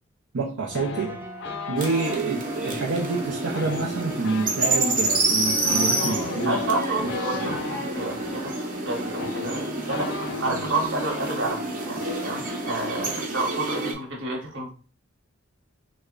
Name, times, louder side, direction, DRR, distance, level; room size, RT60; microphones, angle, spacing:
voice 1, 0.3-1.2 1.7-6.6 7.0-7.1, right 4 dB, 80° right, -2 dB, 0.5 m, -27 dB
sound 1, 0.7-2.2 3.4-7.8 8.8-8.9 9.1-10.8 11.0-11.3 11.6-12.0, left 5 dB, 60° left, 0.4 m, -36 dB
sound 2, 0.7-13.2, equal, 10° right, 0.3 m, -40 dB
sound 3, 1.8-13.9, right 2 dB, 45° right, 0.7 m, -28 dB
voice 2, 6.0-8.5 8.8-14.7, right 2 dB, 65° right, -1 dB, 1.1 m, -30 dB
3.2 x 2.1 x 3.6 m, 0.37 s
head